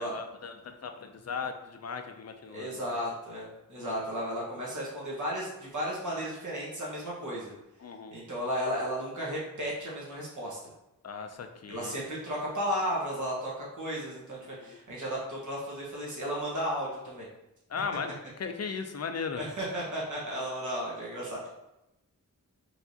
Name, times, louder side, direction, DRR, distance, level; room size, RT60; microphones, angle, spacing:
voice 1, 0.0-3.0 3.8-4.1 7.8-8.2 11.0-12.0 14.6-14.8 17.7-19.4, left 5 dB, 50° left, 6 dB, 0.5 m, -37 dB
voice 2, 2.5-7.5 8.1-10.6 11.7-17.3 19.3-21.5, equal, 60° right, -5 dB, 1.4 m, -34 dB
4.5 x 3.3 x 2.8 m, 0.90 s
wide cardioid pair, 55°, 34 cm